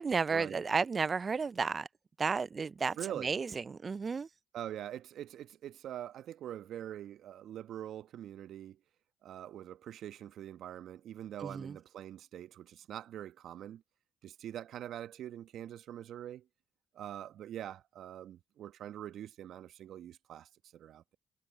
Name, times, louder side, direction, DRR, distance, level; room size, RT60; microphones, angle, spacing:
voice 1, 0.0-1.9 2.2-4.3 11.4-11.7, right 5 dB, 45° right, 0.5 m, -33 dB
voice 2, 3.0-3.3 4.5-8.8 9.2-13.8 14.2-16.5 16.9-21.2, right 11 dB, 70° right, 1.2 m, -44 dB
hypercardioid pair, 40°, 0 cm